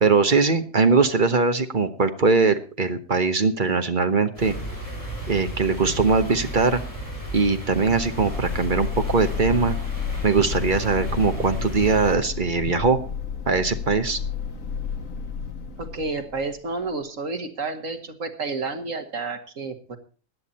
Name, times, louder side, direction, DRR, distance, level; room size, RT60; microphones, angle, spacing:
voice 1, 0.0-4.5 5.3-6.8 7.3-9.8 10.2-13.0 13.5-14.2, right 4 dB, 40° right, 8 dB, 1.3 m, -21 dB
sound 1, 4.4-12.2, right 1 dB, 25° left, 6.3 m, -34 dB
sound 2, 7.6-16.9, left 7 dB, 80° left, 1.9 m, -32 dB
voice 2, 15.8-20.0, right 3 dB, 80° right, 5 dB, 2.2 m, -30 dB
16.0 x 10.5 x 4.2 m, 0.37 s
omnidirectional pair, 1.3 m